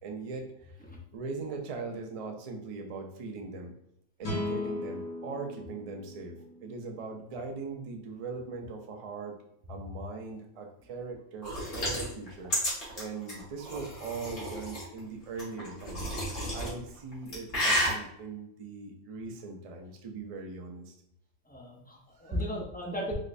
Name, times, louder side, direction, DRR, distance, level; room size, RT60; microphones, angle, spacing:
voice 1, 0.0-0.7 1.1-3.7 4.2-6.3 6.6-9.4 9.6-12.5 12.9-16.2 16.5-20.9 22.2-22.4, right 3 dB, 70° right, 2 dB, 0.3 m, -39 dB
sound 1, 4.2-7.5, left 2 dB, 40° left, 1.2 m, -37 dB
sound 2, 11.4-14.8 15.4-16.7 17.1-17.9, equal, 75° left, 1.7 m, -31 dB
voice 2, 21.5-23.1, equal, 10° left, -2 dB, 0.4 m, -38 dB
3.6 x 3.1 x 2.5 m, 0.75 s
omnidirectional pair, 1.3 m